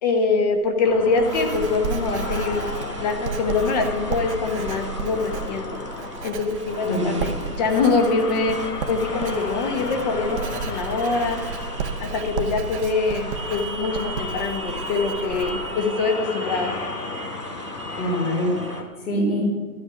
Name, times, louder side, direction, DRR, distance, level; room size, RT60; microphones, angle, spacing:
voice 1, 0.0-5.8 6.2-8.6 8.9-11.4 12.0-16.7, left 4 dB, 30° left, 5 dB, 1.2 m, -24 dB
Writing, 0.5-15.9, right 5 dB, 50° right, 1.0 m, -33 dB
sound 1, 0.8-18.8, left 3 dB, 90° left, 1.7 m, -34 dB
Motorcycle, 1.2-18.8, right 4 dB, 20° right, 0.5 m, -41 dB
voice 2, 6.8-7.2 17.9-19.4, equal, 70° left, -3 dB, 3.8 m, -25 dB
12.5 x 8.1 x 6.0 m, 1.5 s
hypercardioid pair, 150°, 45 cm